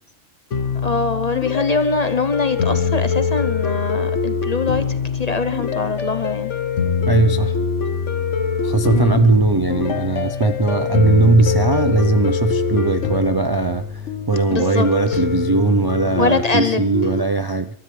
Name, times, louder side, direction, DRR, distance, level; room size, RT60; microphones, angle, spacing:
sound 1, 0.5-17.2, left 6 dB, 70° left, 1.4 m, -23 dB
voice 1, 0.8-4.9 5.1-6.5 8.9-9.2 14.5-15.2 16.2-16.9, left 4 dB, 40° left, 0.7 m, -23 dB
voice 2, 7.1-7.6 8.6-17.8, right 3 dB, 35° right, 0.3 m, -19 dB
27.5 x 13.0 x 3.3 m
omnidirectional pair, 1.3 m